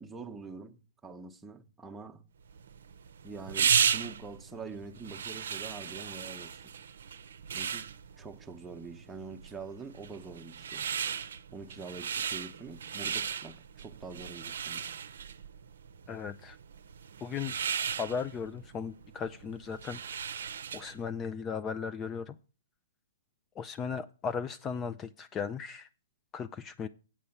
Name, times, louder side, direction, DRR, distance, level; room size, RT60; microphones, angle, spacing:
voice 1, 0.0-2.2 3.2-6.6 7.5-7.9 8.2-10.9 11.5-14.9, right 4 dB, 10° right, 0.9 m, -45 dB
sound 1, 2.5-21.0, right 7 dB, 70° right, 0.6 m, -35 dB
voice 2, 16.1-16.6 17.2-17.5 18.0-22.4 23.6-25.9 26.3-26.9, left 6 dB, 20° left, 0.4 m, -37 dB
8.7 x 5.3 x 7.1 m
hypercardioid pair, 125°, 0 cm